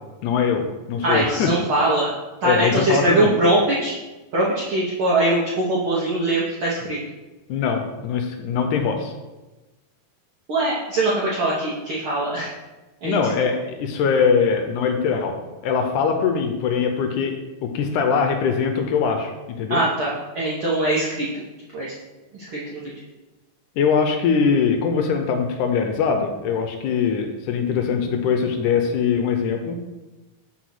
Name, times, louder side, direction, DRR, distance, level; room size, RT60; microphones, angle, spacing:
voice 1, 0.2-1.5 2.4-3.3 7.5-9.1 13.0-15.4 15.6-19.8 23.8-29.8, left 6 dB, 80° left, 5 dB, 2.0 m, -22 dB
voice 2, 1.0-2.1 2.4-3.9 4.3-7.0 10.5-12.5 13.0-13.2 19.7-21.4 21.7-21.9 22.3-22.9, right 1 dB, 75° right, -6 dB, 1.1 m, -22 dB
5.1 x 4.1 x 6.0 m, 1.1 s
omnidirectional pair, 3.8 m